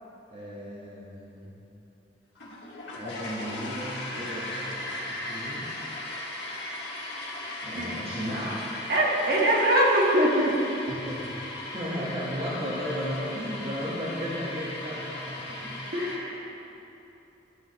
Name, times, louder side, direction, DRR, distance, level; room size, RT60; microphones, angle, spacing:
voice 1, 0.3-1.6 2.9-5.7 7.6-8.6 10.9-15.8, equal, 35° right, -7 dB, 1.4 m, -35 dB
sound 1, 2.4-16.2, left 1 dB, 80° left, 1.7 m, -37 dB
voice 2, 8.9-10.9 15.9-16.5, right 1 dB, 55° right, -4 dB, 1.7 m, -23 dB
13.0 x 7.9 x 3.1 m, 3.0 s
head